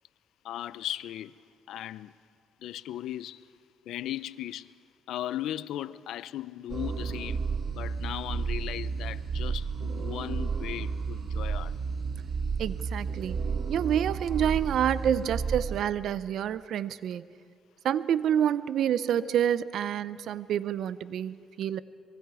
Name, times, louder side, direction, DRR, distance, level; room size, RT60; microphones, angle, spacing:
voice 1, 0.4-1.3 1.7-2.2 2.6-3.5 3.9-4.7 5.1-11.8 19.2-19.3, left 12 dB, 80° left, 0.5 m, -37 dB
sound 1, 6.7-15.8, right 5 dB, 50° right, 0.9 m, -32 dB
voice 2, 12.6-13.4 13.7-17.3 17.8-21.8, right 9 dB, 75° right, 0.6 m, -28 dB
25.0 x 22.5 x 4.9 m
cardioid pair, 90°, 0 cm